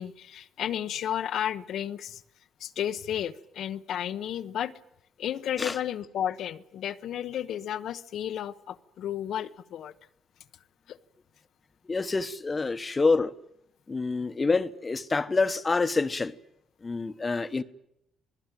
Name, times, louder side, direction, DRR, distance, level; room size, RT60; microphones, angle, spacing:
voice 1, 0.0-2.2 2.6-4.7 5.2-9.9 10.9-11.0, left 10 dB, 75° left, 0.9 m, -33 dB
voice 2, 11.9-13.3 13.9-16.4 16.8-17.6, left 3 dB, 30° left, 1.1 m, -27 dB
27.0 x 18.5 x 9.1 m
cardioid pair, 90°, 0 cm